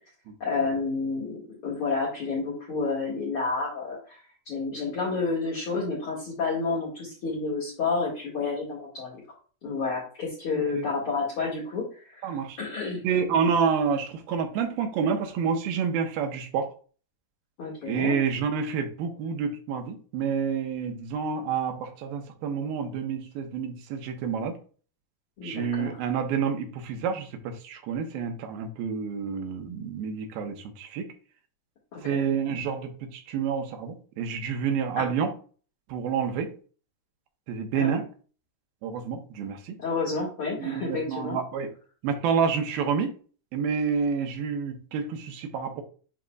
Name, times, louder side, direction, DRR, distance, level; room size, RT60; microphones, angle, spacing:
voice 1, 0.4-9.2 9.6-13.1 17.6-18.2 25.4-26.0 31.9-32.3 35.0-35.1 37.7-38.0 39.8-41.4, left 4 dB, 45° left, -5 dB, 2.3 m, -30 dB
voice 2, 10.5-10.9 12.2-12.6 13.0-16.7 17.9-24.6 25.4-31.1 32.0-35.3 35.9-36.5 37.5-38.1 38.8-39.8 40.6-41.7 42.0-43.1 43.5-45.8, right 6 dB, 85° right, 5 dB, 2.8 m, -28 dB
10.5 x 4.0 x 2.4 m, 0.40 s
omnidirectional pair, 4.1 m